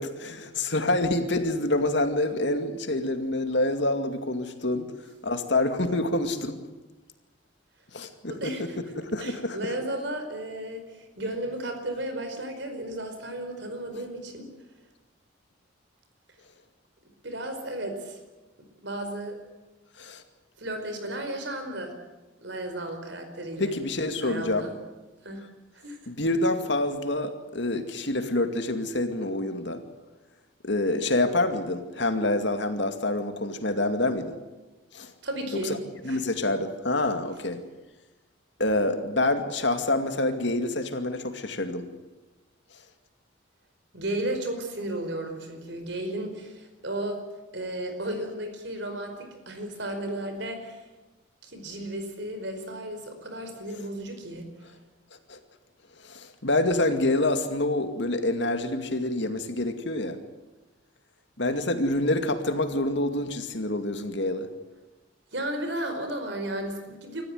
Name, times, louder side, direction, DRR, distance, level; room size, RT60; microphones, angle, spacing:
voice 1, 0.0-4.9 5.2-6.6 7.9-8.5 8.9-9.7 20.0-20.2 23.6-24.7 26.1-29.8 30.6-34.4 34.9-35.1 35.6-35.8 36.0-37.6 38.6-41.9 55.3-55.4 56.0-60.2 61.4-64.5, left 2 dB, 60° left, 7 dB, 2.3 m, -27 dB
voice 2, 8.3-8.8 9.2-14.5 17.2-18.2 18.6-19.4 20.6-22.0 22.4-23.7 24.2-24.7 25.2-25.5 25.7-26.0 35.2-35.8 36.1-36.2 43.9-47.2 47.5-50.8 51.4-54.5 65.3-67.2, right 1 dB, 60° right, 6 dB, 5.0 m, -34 dB
26.0 x 14.5 x 9.4 m, 1.2 s
head